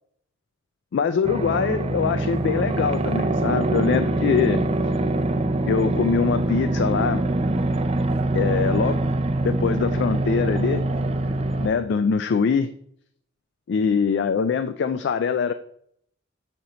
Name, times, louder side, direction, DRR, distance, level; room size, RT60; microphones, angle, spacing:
voice 1, 0.9-4.6 5.7-7.2 8.3-9.1 9.4-10.9 11.6-12.7 13.7-15.5, left 6 dB, 60° left, 11 dB, 0.3 m, -23 dB
sound 1, 1.2-11.7, right 2 dB, 30° right, 0.4 m, -24 dB
7.0 x 4.3 x 3.8 m, 0.67 s
head